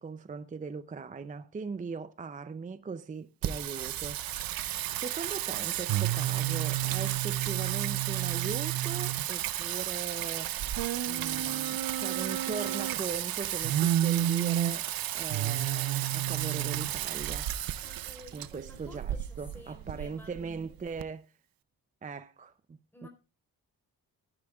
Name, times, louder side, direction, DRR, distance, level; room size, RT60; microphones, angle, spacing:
voice 1, 0.0-10.7 11.1-17.5 18.3-21.3 22.0-23.1, right 5 dB, 20° right, 0.5 m, -40 dB
Singing, 3.4-21.0, right 13 dB, 75° right, 0.6 m, -31 dB
voice 2, 17.8-20.7 22.9-23.1, left 1 dB, 5° left, 4.0 m, -52 dB
17.5 x 10.0 x 2.3 m
cardioid pair, 125°, 36 cm